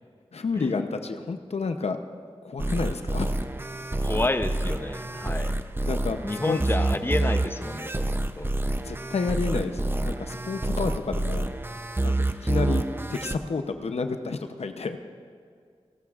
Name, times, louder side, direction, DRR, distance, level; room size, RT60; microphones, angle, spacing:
voice 1, 0.3-2.0 2.4-3.5 5.9-6.6 8.8-11.5 12.0-12.1 12.4-15.1, left 4 dB, 80° left, 7 dB, 0.7 m, -30 dB
sound 1, 2.6-13.4, right 1 dB, 20° right, 0.6 m, -28 dB
voice 2, 4.0-5.5 6.2-8.5, left 2 dB, 20° left, 8 dB, 0.7 m, -30 dB
29.0 x 12.5 x 2.5 m, 2.2 s
cardioid pair, 45°, 11 cm